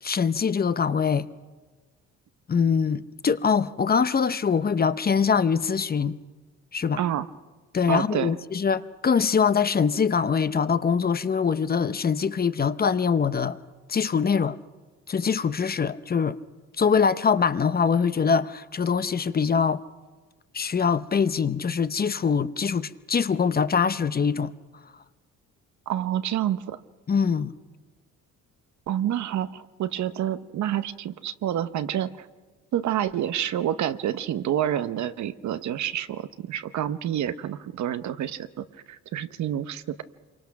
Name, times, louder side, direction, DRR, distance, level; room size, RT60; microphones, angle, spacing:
voice 1, 0.0-1.3 2.5-6.2 6.7-7.0 7.7-13.6 13.9-14.6 15.1-16.4 16.8-19.8 20.5-24.5 27.1-27.5, left 6 dB, 30° left, 0.7 m, -23 dB
voice 2, 7.9-8.3 25.9-26.8 28.9-32.3 32.7-40.0, right 11 dB, 70° right, 0.9 m, -28 dB
27.0 x 24.0 x 5.9 m
cardioid pair, 90°, 30 cm